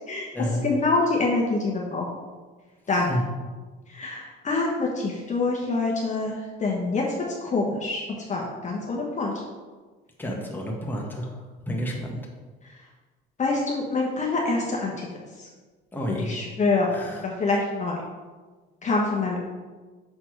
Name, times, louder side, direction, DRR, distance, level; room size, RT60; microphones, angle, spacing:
voice 1, 0.6-2.1 2.9-3.1 3.9-7.0 7.4-8.0 8.3-9.3 13.4-15.1 15.4-15.5 16.2-16.9 17.2-18.0 18.8-19.4, left 3 dB, 35° left, -2 dB, 1.2 m, -25 dB
voice 2, 10.2-12.3 15.9-16.4 16.9-17.3, equal, 10° left, -2 dB, 1.5 m, -30 dB
6.6 x 4.1 x 4.7 m, 1.3 s
supercardioid pair, 90°, 21 cm